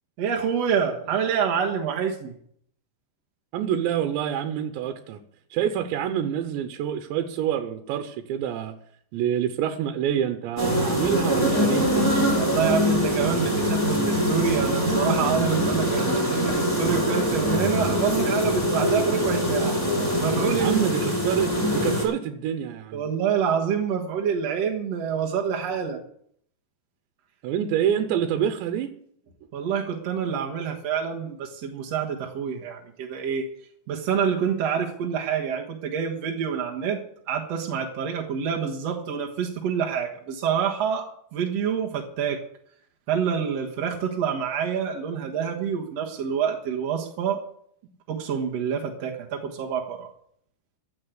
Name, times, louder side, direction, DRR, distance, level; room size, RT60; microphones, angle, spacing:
voice 1, 0.2-2.3 12.3-19.8 20.2-21.0 22.9-26.0 29.5-33.5 33.9-37.0 37.3-42.4 43.1-47.4 48.1-50.1, right 7 dB, 65° right, 0 dB, 1.6 m, -27 dB
voice 2, 3.5-5.2 5.5-8.8 9.1-12.1 20.5-23.1 27.4-28.9, right 9 dB, 85° right, 8 dB, 3.1 m, -27 dB
sound 1, 10.6-22.1, equal, 5° left, 3.2 m, -23 dB
15.5 x 6.4 x 8.0 m, 0.66 s
omnidirectional pair, 5.0 m